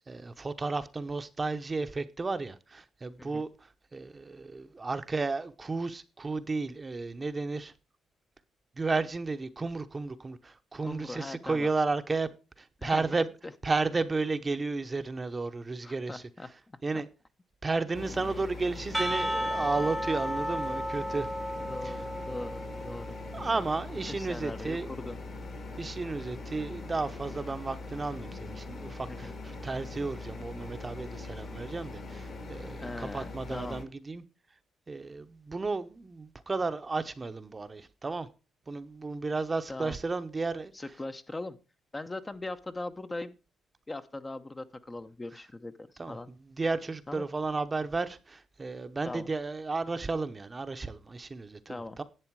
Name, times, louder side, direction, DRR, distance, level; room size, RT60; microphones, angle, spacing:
voice 1, 0.1-3.5 3.9-7.7 8.8-12.3 12.6-13.3 13.6-16.2 16.8-17.1 17.6-21.3 21.8-21.9 23.3-24.9 25.8-34.2 34.9-38.3 38.7-40.7 46.0-46.2 46.6-52.0, right 3 dB, 25° right, 0.8 m, -33 dB
voice 2, 10.8-11.7 12.8-13.2 15.8-17.0 18.2-18.3 21.6-23.5 24.0-25.2 29.1-29.4 32.8-33.8 39.7-40.0 40.7-41.6 41.9-43.3 43.9-46.3 47.1-47.3 49.0-49.3 51.7-52.0, left 2 dB, 20° left, 0.7 m, -40 dB
sound 1, 17.9-33.8, left 2 dB, 50° left, 2.0 m, -42 dB
Percussion / Church bell, 18.9-23.5, equal, 5° right, 1.0 m, -34 dB
11.0 x 7.8 x 4.6 m
cardioid pair, 90°, 0 cm